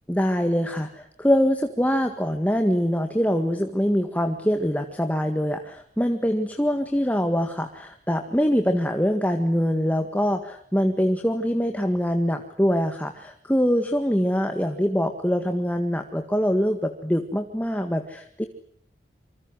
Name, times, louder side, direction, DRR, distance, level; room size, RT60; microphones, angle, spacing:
voice 1, 0.1-18.5, equal, 10° left, 6 dB, 1.7 m, -24 dB
27.0 x 25.5 x 7.9 m, 0.62 s
head